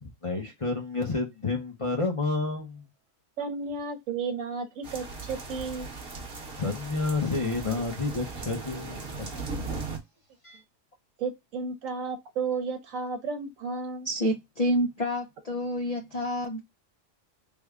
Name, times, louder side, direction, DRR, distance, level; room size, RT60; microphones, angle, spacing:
voice 1, 0.0-2.8 6.6-9.0 9.3-9.6 10.4-10.6, left 3 dB, 30° left, 0.7 m, -30 dB
voice 2, 3.4-5.9 11.2-14.1, right 4 dB, 80° right, 1.2 m, -33 dB
sound 1, 4.8-10.0, right 4 dB, 50° right, 1.0 m, -38 dB
voice 3, 14.0-16.6, equal, 60° left, 0.4 m, -28 dB
3.5 x 2.2 x 3.5 m
omnidirectional pair, 1.3 m